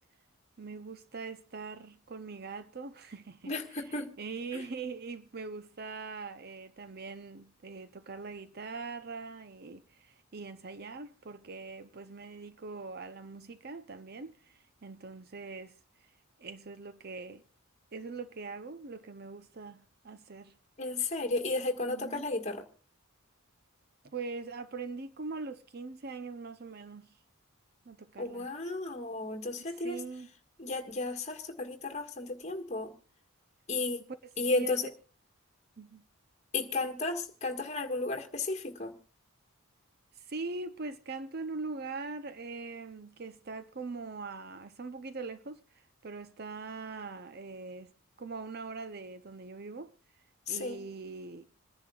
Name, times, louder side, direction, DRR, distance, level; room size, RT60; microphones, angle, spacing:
voice 1, 0.6-16.1 16.4-17.4 17.9-20.5 21.9-22.2 24.0-27.1 27.9-28.5 29.7-30.3 34.5-34.8 35.8-36.0 40.1-47.9 48.2-49.9 50.5-51.5, right 4 dB, 45° right, 0.7 m, -42 dB
voice 2, 3.4-4.1 4.5-4.6 20.8-22.6 28.2-30.0 30.6-32.9 33.7-34.0 34.4-34.9 36.5-38.9 50.5-50.8, left 3 dB, 30° left, 1.7 m, -33 dB
27.5 x 10.5 x 2.4 m
head